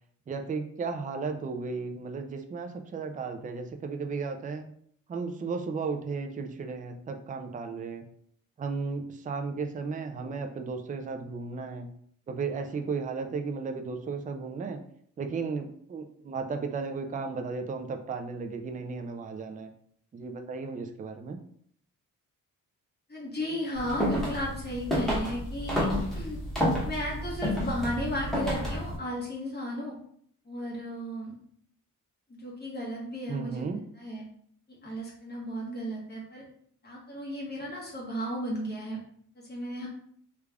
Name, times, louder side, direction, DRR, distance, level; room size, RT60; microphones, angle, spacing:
voice 1, 0.3-4.7 5.1-8.0 8.6-11.9 12.3-14.8 15.2-19.7 20.1-21.4 33.3-33.8, right 4 dB, 25° right, 5 dB, 0.3 m, -34 dB
voice 2, 23.1-26.4 26.8-29.9 30.4-31.3 32.3-33.6 34.0-34.2 34.8-36.4 36.8-39.0 39.5-39.9, equal, 30° left, -4 dB, 1.4 m, -34 dB
sound 1, 23.8-29.0, equal, ahead, 1.1 m, -30 dB
3.3 x 2.4 x 3.4 m, 0.63 s
wide cardioid pair, 120°, 33 cm